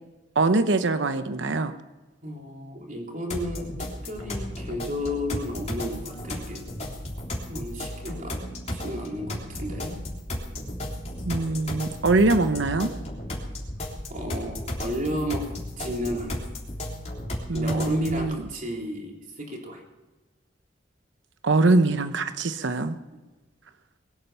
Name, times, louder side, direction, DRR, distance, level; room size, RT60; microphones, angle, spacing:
voice 1, 0.4-1.7 11.2-12.9 17.5-18.4 21.4-23.0, right 2 dB, 85° right, 10 dB, 0.9 m, -23 dB
voice 2, 2.2-3.7 4.0-6.6 7.5-8.4 8.7-9.9 14.1-15.4 15.8-16.5 17.5-19.8 23.1-23.2, equal, 45° right, 0 dB, 3.6 m, -33 dB
sound 1, 3.3-18.3, left 1 dB, 40° left, 3.5 m, -34 dB
22.0 x 8.9 x 6.9 m, 1.2 s
head